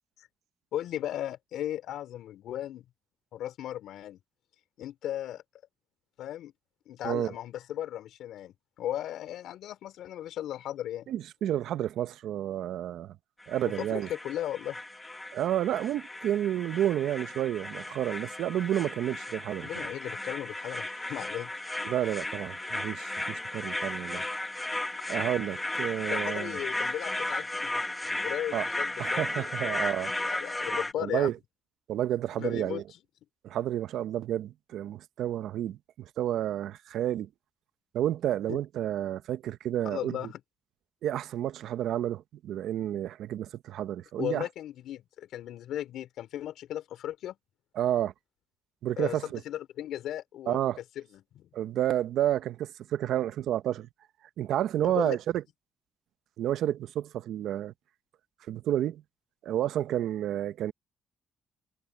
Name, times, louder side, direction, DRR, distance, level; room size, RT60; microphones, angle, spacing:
voice 1, 0.7-2.8 3.3-4.2 4.8-5.4 6.2-6.5 6.9-11.1 13.7-14.8 19.6-21.5 26.1-27.7 28.0-29.8 30.2-31.3 32.4-32.8 38.5-38.6 39.8-40.4 44.2-47.4 49.0-49.2 49.4-50.7 51.0-51.5 54.8-55.2, left 12 dB, 80° left, 4.9 m, -36 dB
voice 2, 11.1-13.2 13.5-14.1 15.3-19.9 21.8-24.2 25.1-26.6 28.5-28.7 29.0-30.3 31.0-31.4 31.9-32.8 33.4-37.3 37.9-40.3 41.0-44.5 47.7-48.1 48.8-49.4 50.5-50.8 51.5-53.9 54.4-55.4 56.4-57.7 58.5-59.0 59.4-60.7, right 11 dB, 80° right, 0.8 m, -30 dB
sound 1, 13.4-30.9, left 2 dB, 15° left, 1.5 m, -35 dB
cardioid pair, 90°, 0 cm